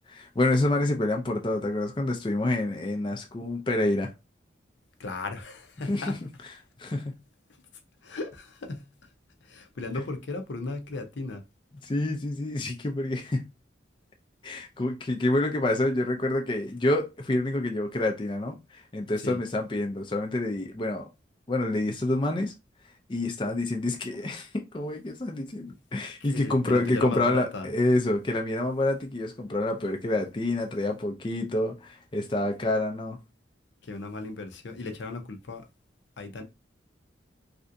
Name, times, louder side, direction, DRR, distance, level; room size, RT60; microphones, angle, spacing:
voice 1, 0.1-4.1 5.9-6.1 6.8-7.1 11.8-13.4 14.4-21.1 21.5-22.5 23.1-33.2, left 2 dB, 25° left, 0.4 m, -27 dB
voice 2, 5.0-6.2 7.5-7.6 8.0-9.1 9.4-11.4 19.2-19.4 25.7-25.8 26.2-27.7 33.8-35.7 36.2-36.4, left 3 dB, 75° left, 0.6 m, -36 dB
3.3 x 2.6 x 2.5 m
head